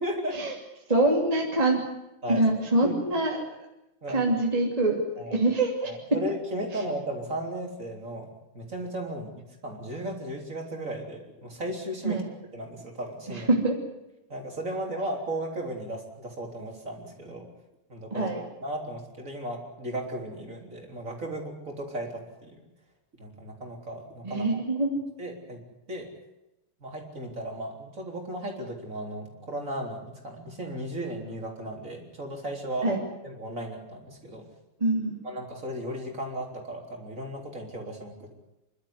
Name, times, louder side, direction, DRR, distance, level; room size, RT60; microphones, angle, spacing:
voice 1, 0.0-0.4 2.2-2.9 4.0-4.3 5.2-5.4 5.8-8.3 8.5-9.3 9.6-12.2 12.5-13.5 14.3-17.5 17.9-18.3 18.6-22.7 23.2-24.6 25.2-25.6 25.9-26.1 26.8-32.9 33.2-34.5 35.2-38.4, right 1 dB, 35° right, 2 dB, 4.1 m, -35 dB
voice 2, 0.9-1.8 2.3-3.5 4.1-5.0 5.3-5.9 12.0-12.2 13.3-13.7 18.1-18.4 24.2-25.0 32.8-33.0 34.8-35.2, right 2 dB, 15° right, -1 dB, 2.9 m, -24 dB
28.5 x 12.5 x 9.6 m, 0.95 s
omnidirectional pair, 2.4 m